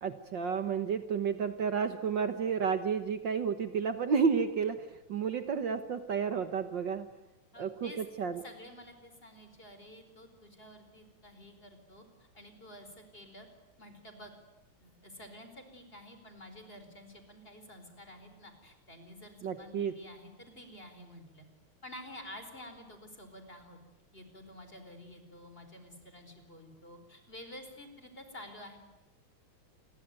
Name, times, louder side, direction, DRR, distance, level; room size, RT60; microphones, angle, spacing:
voice 1, 0.0-7.1 7.6-8.4 19.4-19.9, right 6 dB, 60° right, 9 dB, 1.9 m, -31 dB
voice 2, 7.5-8.0 8.4-12.0 12.3-13.5 13.8-14.3 14.8-21.5 21.8-23.8 24.1-28.8, left 1 dB, 25° left, 7 dB, 4.7 m, -50 dB
29.0 x 22.5 x 9.1 m, 1.0 s
omnidirectional pair, 2.4 m